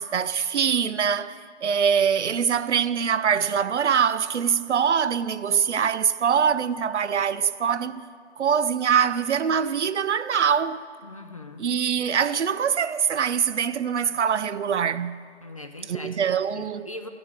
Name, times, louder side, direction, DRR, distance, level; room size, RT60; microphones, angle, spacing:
voice 1, 0.0-8.1 8.4-10.8 11.6-15.2 15.9-16.9, right 7 dB, 75° right, 0.5 m, -23 dB
voice 2, 11.0-11.6 15.4-17.1, left 2 dB, 30° left, 0.4 m, -41 dB
14.5 x 6.0 x 6.2 m
figure-of-eight pair, 145°, 35 cm